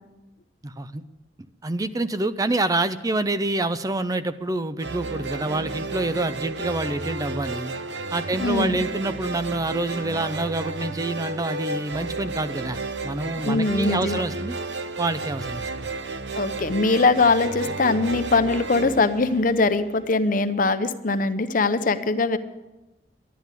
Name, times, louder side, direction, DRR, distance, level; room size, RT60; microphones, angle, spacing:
voice 1, 0.6-1.0 1.6-7.7 8.1-12.8 13.0-14.6 15.0-15.9, right 2 dB, 20° right, 12 dB, 0.5 m, -27 dB
sound 1, 4.8-20.1, right 3 dB, 85° right, 0.8 m, -32 dB
voice 2, 8.4-8.8 13.4-14.2 16.3-22.4, left 3 dB, 50° left, 11 dB, 0.7 m, -22 dB
12.0 x 10.5 x 8.2 m, 1.0 s
head